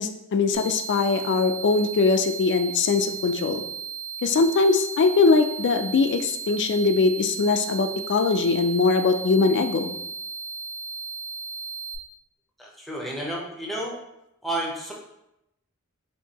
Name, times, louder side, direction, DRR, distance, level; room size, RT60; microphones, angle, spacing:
voice 1, 0.0-3.6 4.2-10.0, left 4 dB, 55° left, 7 dB, 0.4 m, -21 dB
sound 1, 0.5-12.0, right 6 dB, 90° right, 1.0 m, -35 dB
voice 2, 12.6-14.0 14.4-14.9, right 1 dB, ahead, -3 dB, 0.7 m, -31 dB
4.5 x 2.7 x 2.8 m, 0.84 s
head